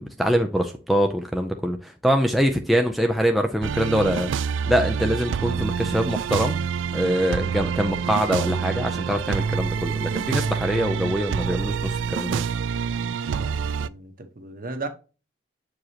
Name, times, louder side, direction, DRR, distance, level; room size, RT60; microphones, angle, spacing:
voice 1, 0.0-4.3 4.7-6.7 6.9-12.4, equal, ahead, 0.5 m, -24 dB
sound 1, 3.6-13.9, right 6 dB, 80° right, 0.3 m, -27 dB
voice 2, 13.2-14.9, right 3 dB, 45° right, 1.1 m, -36 dB
7.6 x 4.8 x 2.8 m
head